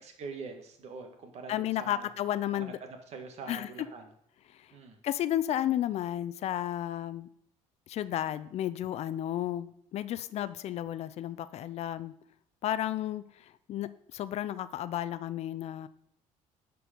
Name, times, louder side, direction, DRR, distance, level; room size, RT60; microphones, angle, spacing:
voice 1, 0.0-2.1 2.5-4.1 4.7-5.0, right 4 dB, 55° right, 4 dB, 1.8 m, -44 dB
voice 2, 1.5-2.8 3.5-3.7 5.0-7.3 7.9-12.1 12.6-13.2 13.7-15.9, left 12 dB, 55° left, 14 dB, 0.5 m, -32 dB
11.0 x 4.6 x 5.2 m, 0.68 s
cardioid pair, 110°, 13 cm